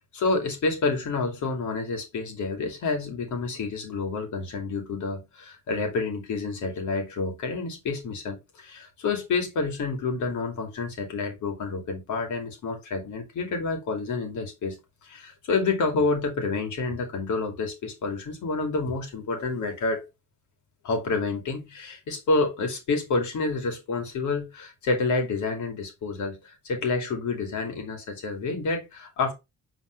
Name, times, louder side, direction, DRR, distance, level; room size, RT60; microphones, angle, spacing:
voice 1, 0.1-14.8 15.0-20.1 20.8-29.3, left 3 dB, 75° left, 2.6 m, -28 dB
7.6 x 4.0 x 3.3 m
cardioid pair, 90°, 30 cm